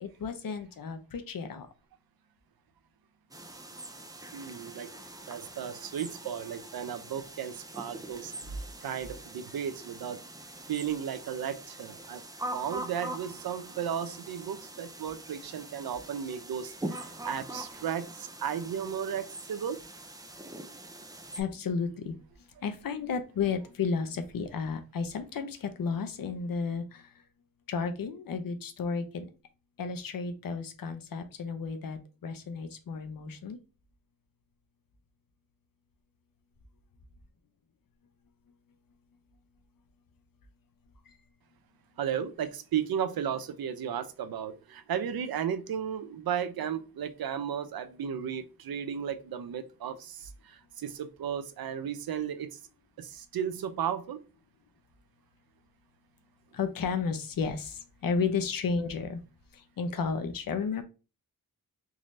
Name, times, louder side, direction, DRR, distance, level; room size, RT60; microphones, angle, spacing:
voice 1, 0.0-1.7 21.3-22.2 22.6-27.1 27.7-29.3 29.8-33.6 56.5-59.2 59.5-60.8, left 5 dB, 70° left, 0.6 m, -33 dB
sound 1, 3.3-21.4, right 1 dB, 10° right, 0.4 m, -43 dB
voice 2, 4.3-4.9 5.3-8.3 8.8-10.2 10.7-12.2 12.5-19.8 42.0-52.6 53.0-54.2, right 8 dB, 85° right, 0.6 m, -34 dB
3.7 x 3.1 x 2.6 m
wide cardioid pair, 170°, 35 cm